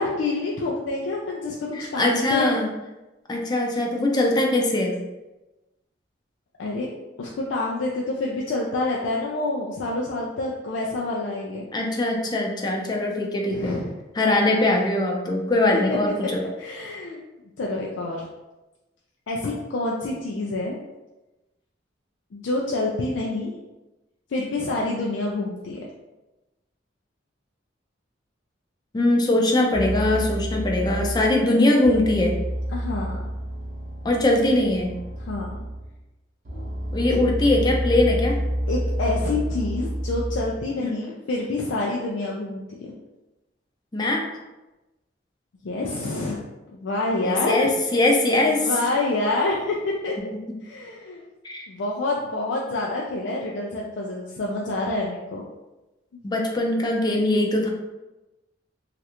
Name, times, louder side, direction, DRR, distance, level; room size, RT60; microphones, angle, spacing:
voice 1, 0.0-2.6 6.6-6.9 7.2-11.7 13.5-13.9 15.7-15.8 16.6-17.2 17.6-18.2 19.3-20.7 22.3-23.5 24.3-25.8 32.7-33.3 35.3-35.5 37.1-37.2 38.7-42.9 45.6-46.4 46.7-47.7 48.5-50.2 50.6-51.2 51.7-55.4 56.1-56.2, left 2 dB, 85° left, -3 dB, 0.4 m, -27 dB
voice 2, 1.7-2.7 3.3-5.0 11.7-13.8 14.2-16.4 28.9-32.4 34.0-35.0 36.9-38.4 40.8-41.0 43.9-44.3 47.2-48.9 51.4-51.7 56.2-57.7, left 2 dB, 25° left, 0 dB, 0.4 m, -21 dB
sound 1, 29.7-31.4 31.8-36.0 36.4-40.6, equal, 45° right, 0.7 m, -29 dB
3.1 x 2.5 x 2.8 m, 1.0 s
head